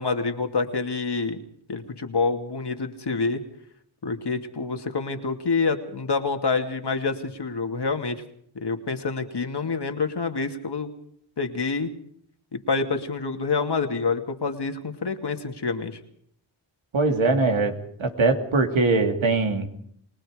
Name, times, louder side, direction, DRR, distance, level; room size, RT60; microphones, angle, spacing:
voice 1, 0.0-1.4 1.7-3.4 4.0-8.2 8.5-10.9 11.4-11.9 12.5-16.0, left 4 dB, 55° left, 5 dB, 2.6 m, -27 dB
voice 2, 16.9-17.7 18.0-19.7, right 3 dB, 70° right, 4 dB, 3.2 m, -21 dB
29.5 x 19.0 x 5.1 m, 0.66 s
cardioid pair, 50°, 49 cm